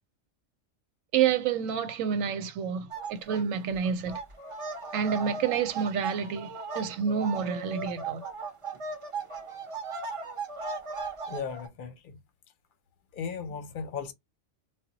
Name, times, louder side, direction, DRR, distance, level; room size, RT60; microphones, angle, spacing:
voice 1, 1.1-4.2 4.9-8.2, right 7 dB, 85° right, 1.0 m, -29 dB
sound 1, 2.9-3.4 3.7-11.7, right 4 dB, 40° right, 0.4 m, -37 dB
voice 2, 11.3-12.2 13.1-14.1, left 6 dB, 50° left, 0.7 m, -36 dB
2.2 x 2.0 x 3.8 m
omnidirectional pair, 1.3 m